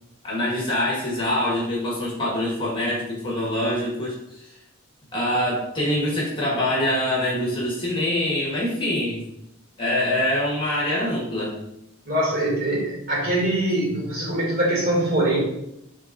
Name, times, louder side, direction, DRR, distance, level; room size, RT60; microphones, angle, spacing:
voice 1, 0.2-4.5 5.1-9.2 9.8-11.6, left 1 dB, 20° left, -4 dB, 1.5 m, -24 dB
voice 2, 12.1-15.4, right 1 dB, 45° right, -4 dB, 2.4 m, -23 dB
10.5 x 3.7 x 2.6 m, 0.82 s
head